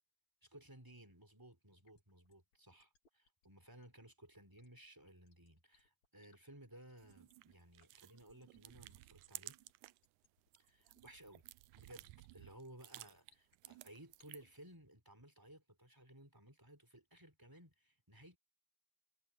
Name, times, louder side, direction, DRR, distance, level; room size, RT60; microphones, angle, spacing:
voice 1, 0.4-9.6 10.6-11.5 11.7-18.4, right 1 dB, 5° right, 4.0 m, -59 dB
sound 1, 1.8-14.5, left 5 dB, 65° left, 4.2 m, -76 dB
sound 2, 7.0-10.1 10.4-14.6, right 19 dB, 80° right, 1.9 m, -56 dB
omnidirectional pair, 3.4 m